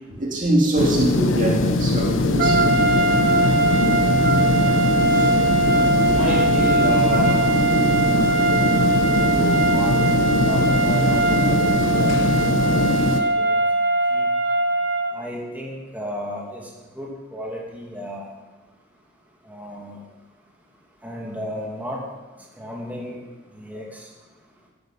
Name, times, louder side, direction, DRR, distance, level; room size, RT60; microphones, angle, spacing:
voice 1, 0.1-2.7 4.3-4.4 5.1-5.4 6.1-6.4, right 1 dB, 40° right, -1 dB, 2.3 m, -23 dB
sound 1, 0.8-13.2, left 2 dB, 90° left, 1.0 m, -21 dB
sound 2, 2.4-15.2, right 3 dB, 70° right, 1.1 m, -21 dB
voice 2, 6.1-7.6 9.2-13.7 14.1-14.3 15.1-18.3 19.4-20.0 21.0-22.1 22.6-23.2 23.5-24.1, equal, 10° right, -3 dB, 2.6 m, -33 dB
13.0 x 13.0 x 5.8 m, 1.2 s
head